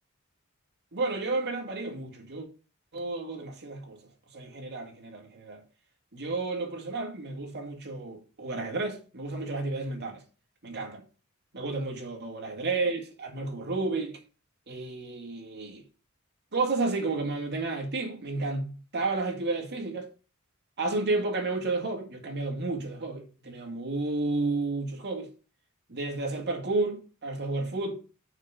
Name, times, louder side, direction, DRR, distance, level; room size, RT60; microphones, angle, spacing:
voice 1, 0.9-2.5 2.9-4.0 4.3-5.6 6.1-10.2 10.6-11.0 11.5-14.2 14.7-15.8 16.5-20.1 20.8-25.3 25.9-27.9, right 3 dB, 50° right, 2.1 m, -31 dB
6.3 x 5.1 x 7.0 m
head